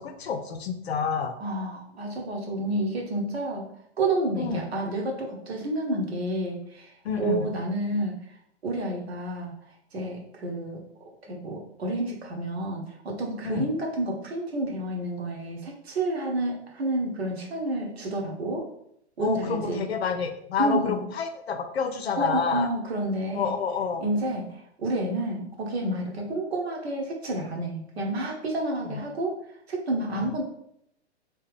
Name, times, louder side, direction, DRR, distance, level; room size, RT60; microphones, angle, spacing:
voice 1, 0.0-1.3 4.4-4.6 7.0-7.5 13.4-13.7 19.2-22.7 23.3-24.0 28.8-29.0 30.1-30.4, left 5 dB, 65° left, 7 dB, 0.6 m, -28 dB
voice 2, 1.4-3.7 4.0-6.9 7.2-8.2 8.6-9.5 9.9-10.8 11.3-18.7 19.2-19.8 20.6-21.0 22.2-23.5 24.0-24.5 24.8-29.3 29.7-30.4, right 1 dB, 65° right, 0 dB, 1.2 m, -29 dB
3.3 x 3.0 x 3.3 m, 0.72 s
figure-of-eight pair, 115°, 34 cm